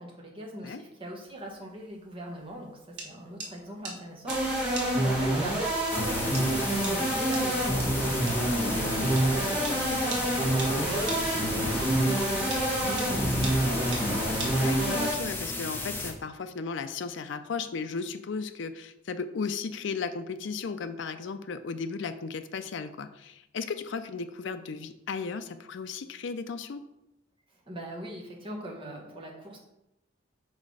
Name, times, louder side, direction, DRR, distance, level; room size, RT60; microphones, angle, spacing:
voice 1, 0.0-5.6 5.9-12.2 12.7-13.6 27.7-29.6, right 1 dB, 25° right, -1 dB, 1.2 m, -41 dB
sound 1, 1.3-15.1, right 2 dB, 60° right, 1.4 m, -42 dB
sound 2, 4.3-15.1, right 1 dB, 5° right, 1.9 m, -27 dB
sound 3, 5.9-16.1, left 2 dB, 10° left, 0.6 m, -35 dB
voice 2, 14.6-26.8, left 5 dB, 65° left, 9 dB, 0.4 m, -35 dB
5.3 x 4.3 x 4.7 m, 0.88 s
head